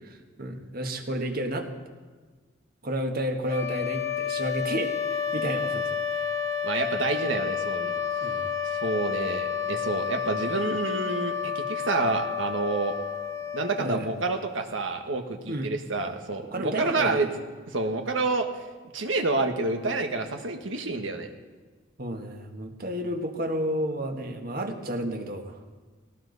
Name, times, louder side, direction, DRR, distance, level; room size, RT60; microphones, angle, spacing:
voice 1, 0.4-1.7 2.8-5.8 6.1-6.3 8.2-8.5 13.8-14.1 15.5-15.7 16.5-17.3 22.0-25.6, right 1 dB, 50° right, 4 dB, 1.6 m, -31 dB
sound 1, 3.4-14.4, left 7 dB, 15° left, 1.3 m, -30 dB
voice 2, 6.6-7.9 8.8-13.0 13.5-17.3 17.7-18.5 18.9-21.3, right 3 dB, 85° right, 5 dB, 1.5 m, -28 dB
18.5 x 18.0 x 4.1 m, 1.4 s
head